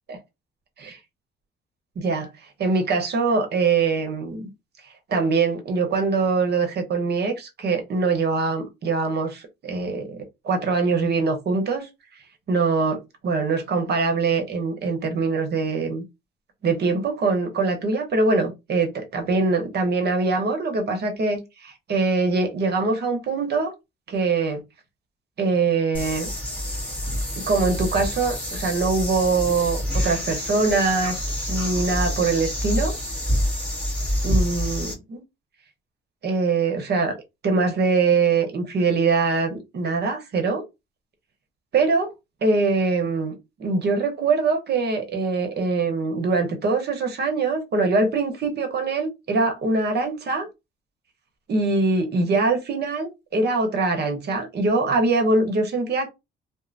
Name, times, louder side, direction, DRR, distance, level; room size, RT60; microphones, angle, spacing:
voice 1, 2.0-2.3 2.6-4.5 5.1-11.9 12.5-16.0 16.6-23.7 24.1-24.6 25.4-26.3 27.4-32.9 34.2-35.2 36.2-37.1 37.4-40.6 41.7-42.1 42.4-50.5 51.5-56.1, right 3 dB, 55° right, 1.0 m, -23 dB
sound 1, 25.9-34.9, equal, 5° left, 1.7 m, -27 dB
3.0 x 2.1 x 2.6 m
cardioid pair, 90°, 20 cm